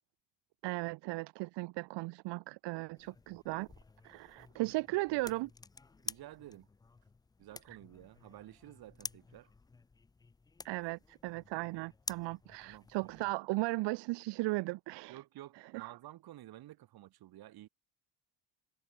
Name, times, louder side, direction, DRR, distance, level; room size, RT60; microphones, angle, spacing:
voice 1, 0.6-3.7 4.0-5.5 7.7-7.8 10.6-15.2 15.6-16.0, right 22 dB, 85° right, 1.0 m, -36 dB
sound 1, 3.0-13.3, left 4 dB, 10° left, 0.4 m, -50 dB
voice 2, 6.0-6.7 7.4-9.5 12.6-12.9 15.1-17.7, right 14 dB, 60° right, 6.4 m, -52 dB
cardioid pair, 160°, 41 cm